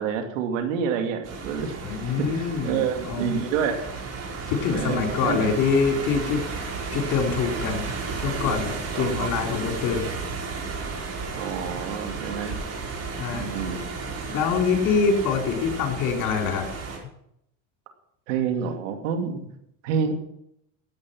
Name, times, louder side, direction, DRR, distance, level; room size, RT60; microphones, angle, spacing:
voice 1, 0.0-2.0 2.2-3.9 4.7-5.5 8.9-9.3 11.4-12.5 13.3-13.9 18.3-19.5 19.8-20.1, right 7 dB, 90° right, 5 dB, 2.5 m, -28 dB
sound 1, 1.2-17.0, right 4 dB, 40° right, 5.1 m, -33 dB
voice 2, 1.8-3.4 4.5-6.4 6.9-7.9 8.2-10.1 12.5-12.6 13.2-13.5 14.3-16.6, left 5 dB, 60° left, 2 dB, 4.6 m, -25 dB
16.0 x 9.1 x 6.1 m, 0.76 s
supercardioid pair, 95°, 38 cm